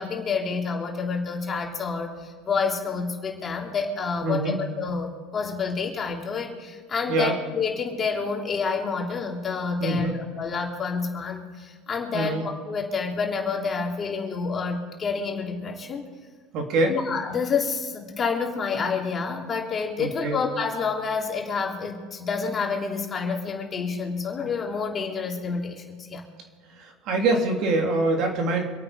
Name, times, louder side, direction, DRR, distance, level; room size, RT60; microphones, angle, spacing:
voice 1, 0.0-16.1 16.9-26.2, left 5 dB, 30° left, 1 dB, 3.1 m, -28 dB
voice 2, 4.2-4.6 7.1-7.3 9.8-10.1 12.1-12.4 16.5-17.0 20.0-20.4 26.7-28.6, right 2 dB, 55° right, 2 dB, 3.2 m, -24 dB
26.0 x 8.9 x 5.0 m, 1.5 s
supercardioid pair, 95°, 0 cm